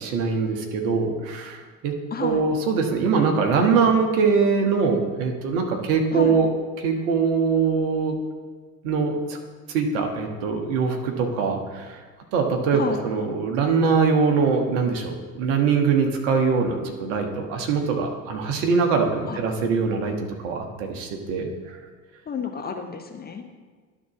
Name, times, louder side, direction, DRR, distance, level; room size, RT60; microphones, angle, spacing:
voice 1, 0.0-1.9 2.2-6.5 6.8-8.2 8.8-9.4 9.7-12.0 12.3-20.1 20.4-21.8, right 5 dB, 55° right, 3 dB, 1.4 m, -23 dB
voice 2, 2.1-2.4 6.1-6.4 12.7-13.0 19.3-19.4 22.3-23.4, left 6 dB, 20° left, 4 dB, 0.7 m, -31 dB
11.5 x 4.1 x 5.8 m, 1.4 s
figure-of-eight pair, 70°, 46 cm